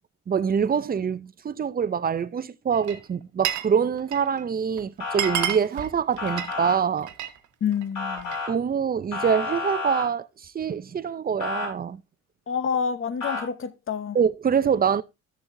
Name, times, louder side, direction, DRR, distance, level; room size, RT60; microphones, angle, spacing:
voice 1, 0.3-7.1 8.5-12.0 14.1-15.0, right 7 dB, 30° right, 0.6 m, -25 dB
Glass, 2.7-3.7 4.0-4.4 4.8-4.9 5.1-7.4 7.7-8.5, right 10 dB, 75° right, 1.2 m, -31 dB
Motor vehicle (road) / Siren, 5.0-5.5 6.2-6.8 7.9-8.5 9.1-10.0 11.4-11.7 13.2-13.4, left 4 dB, 80° left, 6.6 m, -30 dB
voice 2, 7.6-8.3 12.5-14.2, left 7 dB, 45° left, 1.0 m, -28 dB
13.5 x 7.0 x 2.7 m
cardioid pair, 90°, 30 cm